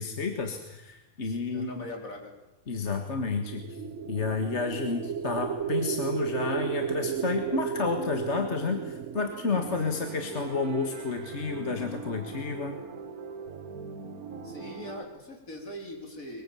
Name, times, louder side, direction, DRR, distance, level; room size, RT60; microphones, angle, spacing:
voice 1, 0.0-1.8 2.7-3.7 4.1-12.8, left 4 dB, 50° left, 5 dB, 2.0 m, -31 dB
voice 2, 1.2-2.3 14.4-16.4, left 1 dB, 70° left, 2 dB, 4.3 m, -41 dB
sound 1, 3.3-11.4, right 7 dB, 60° right, 1.3 m, -34 dB
sound 2, 9.5-15.0, right 4 dB, 90° right, 1.7 m, -41 dB
22.5 x 22.0 x 7.1 m, 0.97 s
omnidirectional pair, 1.5 m